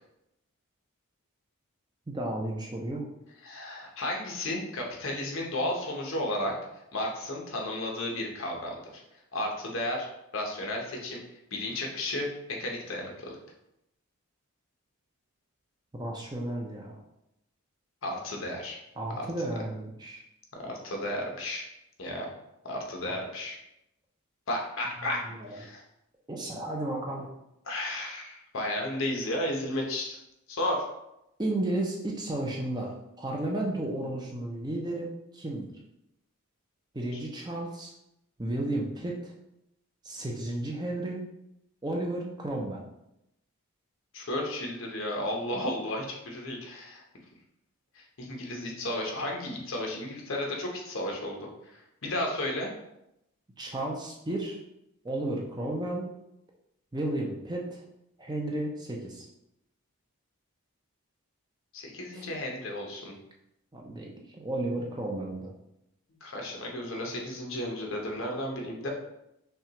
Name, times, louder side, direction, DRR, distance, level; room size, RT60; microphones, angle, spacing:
voice 1, 2.1-3.1 15.9-17.0 19.0-20.2 23.1-23.2 25.0-25.6 26.3-27.3 31.4-35.7 36.9-37.9 38.4-39.3 40.0-41.2 41.8-42.8 53.6-54.6 55.0-56.1 56.9-57.8 58.2-59.3 62.1-62.2 63.7-65.5, right 1 dB, 20° right, -1 dB, 0.5 m, -33 dB
voice 2, 3.4-6.5 6.9-9.0 9.3-10.1 10.3-11.2 11.5-13.3 18.0-18.8 19.2-19.3 20.6-21.6 22.0-22.3 22.6-23.6 24.5-25.8 27.7-30.2 30.5-30.9 44.1-47.0 47.9-52.7 61.7-63.1 66.2-68.9, left 1 dB, 60° left, 0 dB, 0.8 m, -33 dB
5.6 x 2.3 x 2.9 m, 0.84 s
head